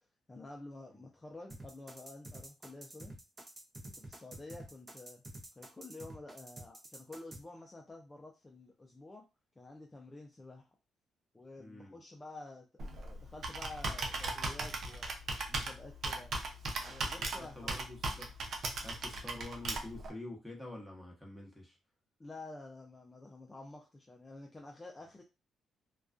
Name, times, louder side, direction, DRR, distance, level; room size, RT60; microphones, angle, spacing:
voice 1, 0.3-3.1 3.9-5.2 5.6-9.2 9.6-10.7 11.3-12.7 12.9-15.2 15.5-16.3 16.8-17.7 22.2-25.2, left 2 dB, 20° left, 1 dB, 0.4 m, -50 dB
sound 1, 1.5-7.4, right 1 dB, 25° right, 0.7 m, -48 dB
voice 2, 11.6-11.9 17.2-18.3 18.8-21.8, left 2 dB, ahead, -1 dB, 1.0 m, -47 dB
Computer keyboard, 12.8-20.1, right 2 dB, 55° right, 0.5 m, -38 dB
2.3 x 2.2 x 2.4 m, 0.27 s
cardioid pair, 90°, 0 cm